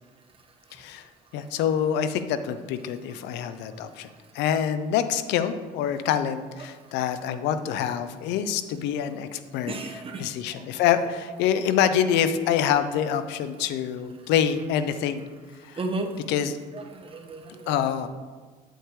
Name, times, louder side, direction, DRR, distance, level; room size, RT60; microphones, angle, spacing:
voice 1, 0.7-1.0 1.3-4.1 4.3-9.7 10.2-15.3 15.6-15.8 16.3-16.6 17.7-18.1, left 9 dB, 85° left, 11 dB, 0.6 m, -26 dB
voice 2, 9.7-10.8 15.7-16.2 16.7-17.7, right 2 dB, 30° right, 3 dB, 1.1 m, -34 dB
8.1 x 8.0 x 3.1 m, 1.4 s
supercardioid pair, 80°, 17 cm